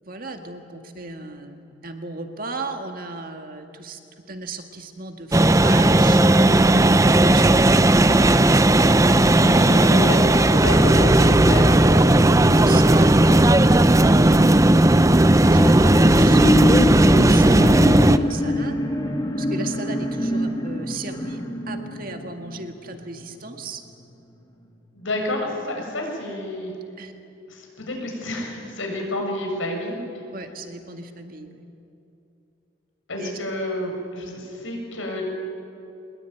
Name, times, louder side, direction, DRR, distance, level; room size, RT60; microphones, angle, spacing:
voice 1, 0.0-4.0 4.3-9.2 12.1-18.8 19.4-21.4 21.7-23.8 27.0-27.1 30.3-31.6 33.2-33.4, right 3 dB, 45° right, 5 dB, 2.0 m, -36 dB
sound 1, 5.3-18.2, right 1 dB, 15° right, 0.5 m, -15 dB
voice 2, 9.4-11.7 24.9-26.7 27.5-30.0 33.1-35.2, left 1 dB, 90° left, 1 dB, 6.9 m, -29 dB
sound 2, 15.3-23.1 23.5-23.6, left 1 dB, 20° left, 2.4 m, -25 dB
23.5 x 21.5 x 9.4 m, 2.7 s
head